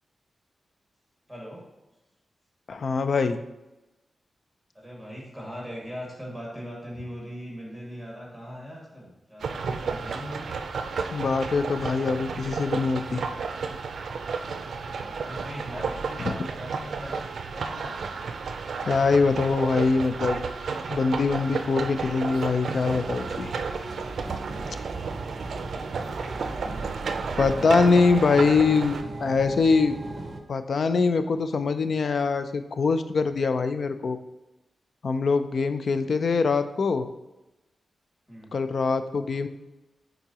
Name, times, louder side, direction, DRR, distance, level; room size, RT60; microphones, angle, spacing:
voice 1, 1.3-1.6 4.7-10.5 14.7-17.2 17.5-18.0 25.2-26.2 27.3-27.8 38.3-38.5, equal, 5° left, -4 dB, 2.1 m, -40 dB
voice 2, 2.7-3.4 11.1-13.2 16.2-16.3 18.9-20.4 20.9-23.5 27.4-30.0 30.5-34.2 35.0-37.1 38.5-39.5, left 4 dB, 55° left, 10 dB, 0.4 m, -23 dB
sound 1, 9.4-29.0, right 5 dB, 80° right, 0.4 m, -32 dB
sound 2, 22.8-30.4, right 2 dB, 35° right, 0.6 m, -38 dB
9.2 x 3.9 x 2.9 m, 1.0 s
wide cardioid pair, 145°, 0 cm